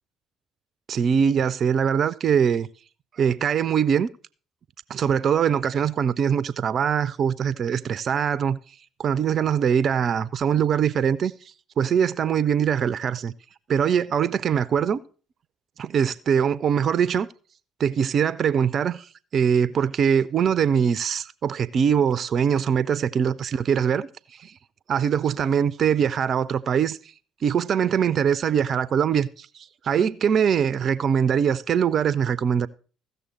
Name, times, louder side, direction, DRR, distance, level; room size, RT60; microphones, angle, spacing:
voice 1, 0.9-2.7 3.2-4.1 4.9-8.6 9.0-11.3 11.8-13.3 13.7-15.0 15.8-17.3 17.8-24.1 24.4-24.5 24.9-27.0 27.4-29.5 29.8-32.7, right 7 dB, 45° right, 0.4 m, -22 dB
15.5 x 6.8 x 4.4 m
figure-of-eight pair, 50°, 0 cm